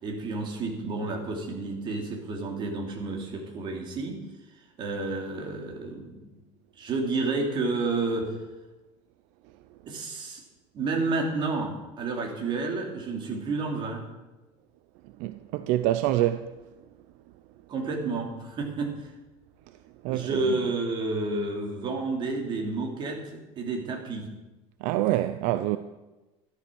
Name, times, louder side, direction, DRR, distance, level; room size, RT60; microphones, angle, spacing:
voice 1, 0.0-4.2 4.8-6.3 6.8-8.3 9.9-10.4 10.7-14.0 17.7-19.1 20.1-23.2 23.6-24.3, right 3 dB, 35° right, 2.9 m, -30 dB
voice 2, 15.2-16.5 20.0-20.4 24.8-25.8, right 14 dB, 70° right, 0.6 m, -26 dB
13.0 x 11.5 x 6.3 m
cardioid pair, 160°, 13 cm